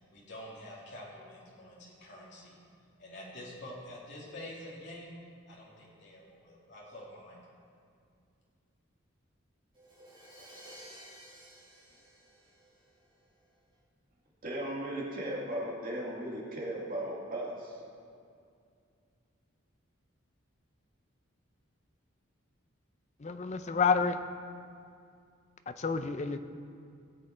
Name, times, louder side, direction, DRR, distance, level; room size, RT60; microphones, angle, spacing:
voice 1, 0.1-2.6 3.0-5.1 5.5-7.6, left 1 dB, 55° left, -5 dB, 2.6 m, -47 dB
Crash cymbal, 9.7-13.5, equal, 25° right, 3.4 m, -53 dB
voice 2, 14.4-17.8, right 1 dB, 45° right, -3 dB, 2.3 m, -36 dB
voice 3, 23.2-24.2 25.7-26.4, left 5 dB, 35° left, 9 dB, 0.5 m, -29 dB
19.0 x 7.7 x 4.5 m, 2.4 s
head